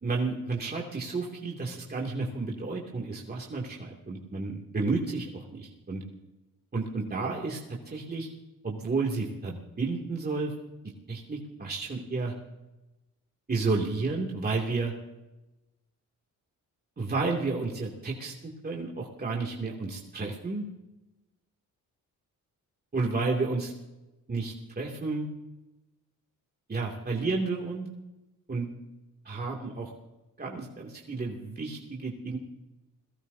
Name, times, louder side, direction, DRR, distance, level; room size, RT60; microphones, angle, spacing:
voice 1, 0.0-6.0 6.7-7.6 7.9-8.3 8.6-10.5 11.1-12.3 13.5-14.9 17.0-18.3 18.6-20.7 22.9-23.7 24.3-25.3 26.7-27.9 28.5-28.7 29.2-29.9 30.4-32.4, right 3 dB, 25° right, -2 dB, 2.6 m, -31 dB
28.5 x 18.0 x 2.8 m, 1.0 s
cardioid pair, 95°, 34 cm